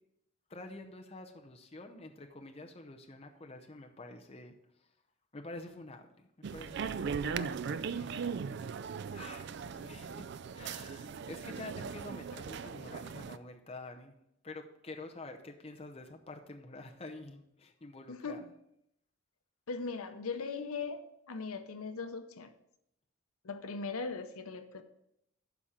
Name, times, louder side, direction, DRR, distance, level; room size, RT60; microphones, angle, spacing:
voice 1, 0.5-4.5 5.3-8.1 9.1-10.2 10.5-14.1 14.4-18.5, left 2 dB, 25° left, 3 dB, 0.7 m, -48 dB
sound 1, 6.4-13.4, right 6 dB, 50° right, 0.3 m, -39 dB
voice 2, 18.1-18.5 19.7-22.5 23.4-24.8, left 4 dB, 80° left, 9 dB, 0.7 m, -39 dB
12.0 x 4.3 x 5.0 m, 0.78 s
head